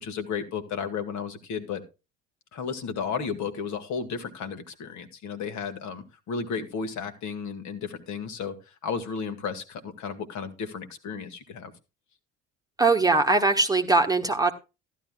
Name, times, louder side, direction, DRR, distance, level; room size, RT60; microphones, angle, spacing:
voice 1, 0.0-1.8 2.5-11.7, left 6 dB, 50° left, 7 dB, 1.7 m, -33 dB
voice 2, 12.8-14.5, right 3 dB, 10° right, 4 dB, 1.3 m, -21 dB
14.5 x 11.5 x 2.3 m, 0.28 s
figure-of-eight pair, 50°, 36 cm